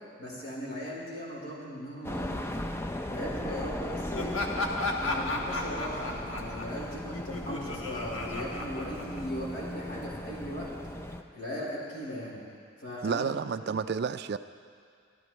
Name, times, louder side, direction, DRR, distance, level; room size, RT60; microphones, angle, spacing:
voice 1, 0.2-2.6 3.0-4.4 5.0-10.7 11.3-12.4 12.8-13.2 13.6-13.7, equal, 50° left, -6 dB, 4.5 m, -38 dB
sound 1, 2.0-11.2, left 1 dB, 10° left, 0.5 m, -37 dB
Laughter, 4.1-9.6, left 2 dB, 85° left, 1.3 m, -34 dB
voice 2, 13.0-14.4, right 6 dB, 55° right, 11 dB, 0.3 m, -30 dB
23.5 x 13.5 x 3.1 m, 2.1 s
head